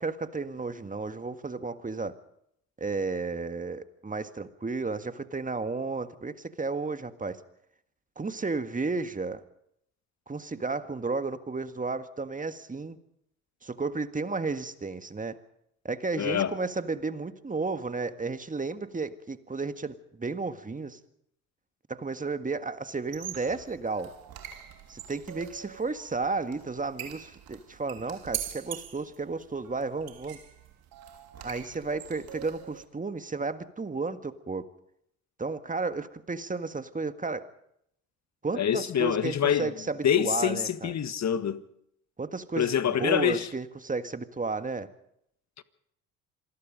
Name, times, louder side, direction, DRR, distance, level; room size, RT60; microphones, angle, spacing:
voice 1, 0.0-2.1 2.8-7.4 8.1-9.4 10.3-13.0 13.6-15.4 15.8-21.0 21.9-24.1 24.9-30.4 31.4-34.6 35.4-37.5 38.4-40.9 42.2-44.9, right 3 dB, 20° right, 1.7 m, -33 dB
voice 2, 16.2-16.6 38.5-39.7 40.0-41.6 42.6-43.5, left 9 dB, 40° left, 1.6 m, -26 dB
sound 1, 23.0-32.8, right 11 dB, 60° right, 3.2 m, -43 dB
27.0 x 20.0 x 5.3 m
hypercardioid pair, 60°, 40 cm